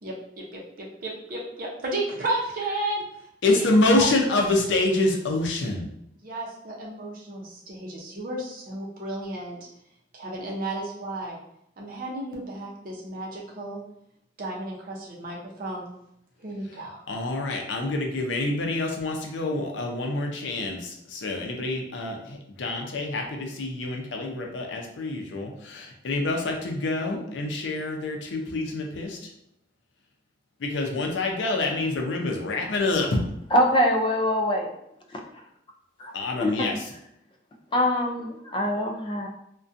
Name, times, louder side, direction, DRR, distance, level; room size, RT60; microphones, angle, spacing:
voice 1, 0.0-3.0 3.4-3.6 3.9-4.1 6.2-9.6 10.1-11.4 11.8-13.8 14.4-15.8 16.4-17.0, right 1 dB, 50° right, -3 dB, 0.6 m, -33 dB
voice 2, 3.4-5.9 17.1-29.2 30.6-33.2 36.1-36.9, left 2 dB, 85° left, 2 dB, 0.5 m, -26 dB
voice 3, 33.5-34.7 36.0-36.1 36.4-36.7 37.7-39.3, equal, 25° left, 1 dB, 0.3 m, -23 dB
2.5 x 2.2 x 2.5 m, 0.77 s
head